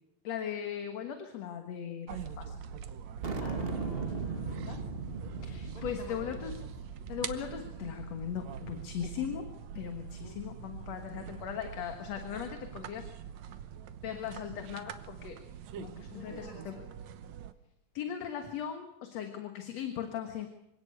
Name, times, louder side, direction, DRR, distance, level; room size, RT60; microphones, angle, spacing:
voice 1, 0.2-2.6 5.4-6.6 7.1-9.5 9.8-13.1 14.0-15.4 15.8-16.8 17.9-20.5, left 9 dB, 60° left, 6 dB, 2.5 m, -38 dB
sound 1, 2.1-17.5, right 8 dB, 65° right, 2.1 m, -44 dB
sound 2, 3.2-7.9, right 4 dB, 45° right, 0.7 m, -38 dB
voice 2, 3.4-4.9 5.7-6.7 10.2-10.6 16.1-16.8, left 2 dB, 45° left, 2 dB, 4.3 m, -49 dB
25.5 x 17.5 x 8.1 m, 0.85 s
omnidirectional pair, 3.6 m